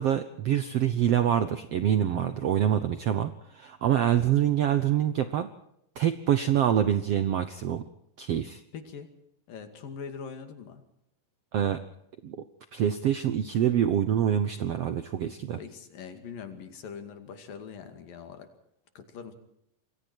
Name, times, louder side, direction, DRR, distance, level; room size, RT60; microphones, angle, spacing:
voice 1, 0.0-5.5 6.0-7.8 8.2-8.6 11.5-11.8 12.2-12.4 12.7-15.6, right 10 dB, 70° right, 11 dB, 1.5 m, -25 dB
voice 2, 8.7-9.1 9.5-10.8 15.6-18.5 19.0-19.3, left 6 dB, 75° left, 7 dB, 4.1 m, -42 dB
28.0 x 23.0 x 4.6 m, 0.77 s
omnidirectional pair, 4.1 m